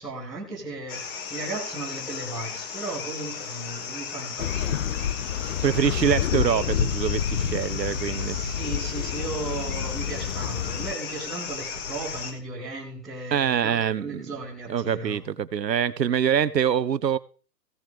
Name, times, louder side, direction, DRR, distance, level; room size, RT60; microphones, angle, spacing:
voice 1, 0.0-4.8 8.2-15.2, right 2 dB, ahead, 0.5 m, -36 dB
sound 1, 0.9-12.3, left 5 dB, 35° left, 2.4 m, -34 dB
sound 2, 4.4-10.9, left 10 dB, 55° left, 0.7 m, -29 dB
voice 2, 5.6-8.4 13.3-14.3 14.7-17.2, right 8 dB, 90° right, 1.1 m, -24 dB
16.5 x 7.6 x 5.3 m
hypercardioid pair, 145°, 48 cm